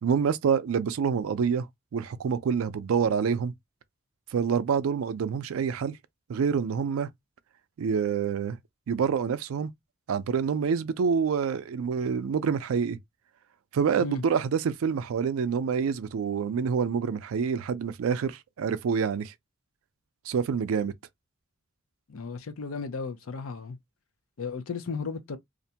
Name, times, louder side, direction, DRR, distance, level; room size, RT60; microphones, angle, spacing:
voice 1, 0.0-1.7 1.9-3.5 4.3-6.0 6.3-7.1 7.8-8.6 8.9-9.7 10.1-13.0 13.7-19.3 20.3-20.9, right 6 dB, 90° right, 0.4 m, -27 dB
voice 2, 22.1-23.8 24.4-25.4, left 4 dB, 85° left, 0.5 m, -34 dB
2.5 x 2.1 x 2.7 m
head